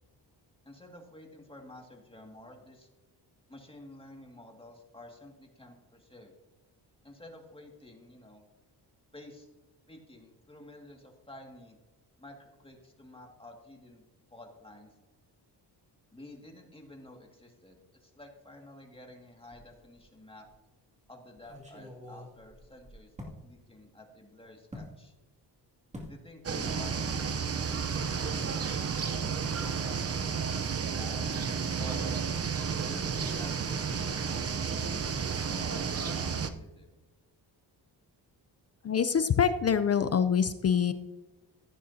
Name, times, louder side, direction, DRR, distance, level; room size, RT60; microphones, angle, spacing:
voice 1, 0.6-2.9 3.5-6.3 7.0-8.4 9.1-9.5 9.9-11.8 12.2-14.0 14.3-14.9 16.1-20.5 21.1-25.1 26.1-30.5 31.0-31.3 31.8-32.2 32.8-36.9, left 1 dB, 15° left, 1 dB, 2.0 m, -51 dB
sound 1, 19.5-20.1 20.4-20.5 21.4-23.4 24.7-24.9 25.9-26.2 26.5-26.9 27.1-27.3, left 1 dB, 15° right, 2.3 m, -46 dB
sound 2, 26.4-36.5, right 6 dB, 35° right, 0.7 m, -32 dB
voice 2, 38.8-40.9, left 7 dB, 40° left, 11 dB, 0.5 m, -25 dB
15.0 x 9.3 x 2.8 m, 1.1 s
cardioid pair, 110°, 42 cm